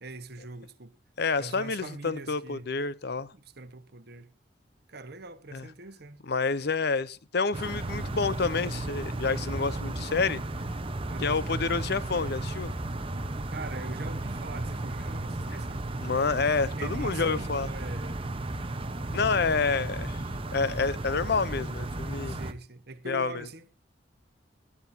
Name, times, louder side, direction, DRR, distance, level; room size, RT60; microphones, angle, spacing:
voice 1, 0.0-0.9 1.4-2.7 3.3-4.3 4.9-6.2 11.1-11.4 13.5-15.8 16.8-18.2 22.2-23.8, right 2 dB, 60° right, 1.4 m, -42 dB
voice 2, 1.2-3.3 5.5-5.7 6.2-10.4 11.2-12.7 16.0-17.7 19.1-20.2 20.5-22.4 23.0-23.5, left 4 dB, 60° left, 0.7 m, -28 dB
sound 1, 7.5-22.5, right 2 dB, 30° right, 1.0 m, -34 dB
19.0 x 12.5 x 2.8 m
head